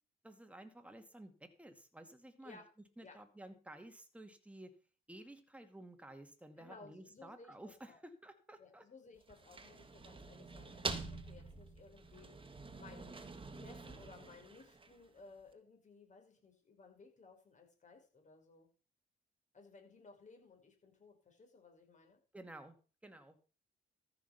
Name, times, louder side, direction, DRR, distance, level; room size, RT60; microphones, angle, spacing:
voice 1, 0.2-2.6 3.0-4.7 5.1-8.8 22.3-22.7 23.0-23.4, right 1 dB, 5° right, 6 dB, 2.2 m, -53 dB
voice 2, 6.6-8.0 8.6-13.2 13.5-18.7 19.5-22.2, left 4 dB, 40° left, 3 dB, 5.2 m, -59 dB
sound 1, 9.2-15.2, right 3 dB, 25° right, 1.8 m, -46 dB
14.0 x 6.3 x 5.9 m, 0.37 s
cardioid pair, 90°, 20 cm